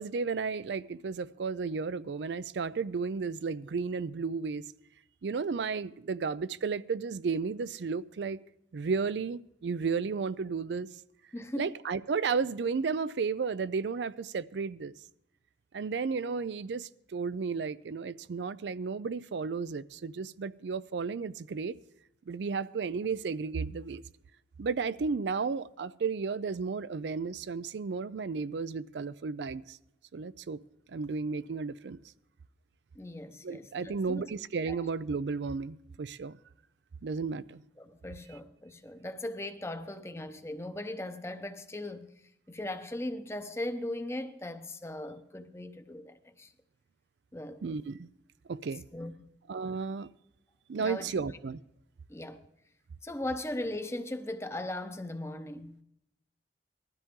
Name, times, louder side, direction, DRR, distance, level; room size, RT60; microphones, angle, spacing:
voice 1, 0.0-4.6 5.2-8.4 8.7-10.9 11.6-14.9 15.7-21.8 22.3-24.0 24.6-29.8 30.1-30.6 30.9-32.0 33.4-36.4 37.0-37.6 47.6-48.1 48.5-48.8 49.5-50.1 50.7-51.6, right 5 dB, 80° right, 0.4 m, -33 dB
voice 2, 11.3-11.7 32.9-34.2 34.7-34.8 37.8-42.1 42.5-46.5 47.3-47.6 48.9-49.3 50.8-51.1 52.1-52.4 53.0-55.8, left 1 dB, 15° left, 0.8 m, -38 dB
19.5 x 13.0 x 3.7 m
head